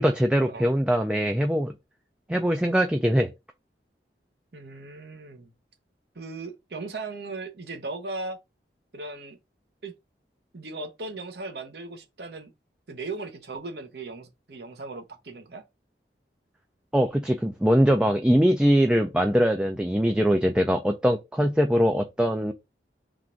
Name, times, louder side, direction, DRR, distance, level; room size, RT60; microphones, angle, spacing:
voice 1, 0.0-1.7 2.3-3.3 16.9-22.5, equal, 5° right, 0.3 m, -22 dB
voice 2, 4.5-5.5 6.1-8.4 8.9-9.4 9.8-9.9 10.5-12.5 12.9-15.6, right 3 dB, 70° right, 0.9 m, -37 dB
3.7 x 2.5 x 4.4 m
head